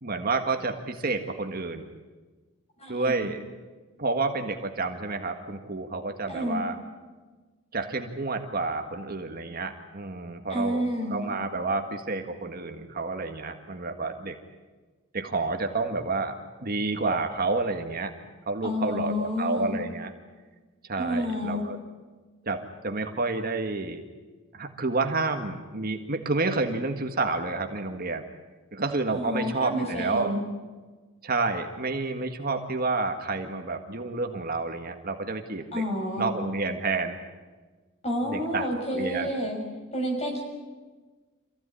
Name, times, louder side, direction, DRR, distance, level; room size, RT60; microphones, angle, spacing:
voice 1, 0.0-1.8 2.9-3.4 4.0-6.7 7.7-10.8 11.1-14.4 15.1-16.4 16.6-18.1 18.5-20.1 20.9-21.8 22.4-24.0 24.5-28.2 28.7-30.3 31.2-35.8 36.2-37.2 38.2-39.3, right 3 dB, 45° right, 5 dB, 1.7 m, -29 dB
voice 2, 2.8-3.3 6.3-6.6 10.5-11.2 18.6-19.8 21.0-21.7 29.1-30.4 35.7-36.3 38.0-39.6 39.9-40.4, equal, 30° left, 2 dB, 5.9 m, -29 dB
26.5 x 16.0 x 9.9 m, 1.3 s
head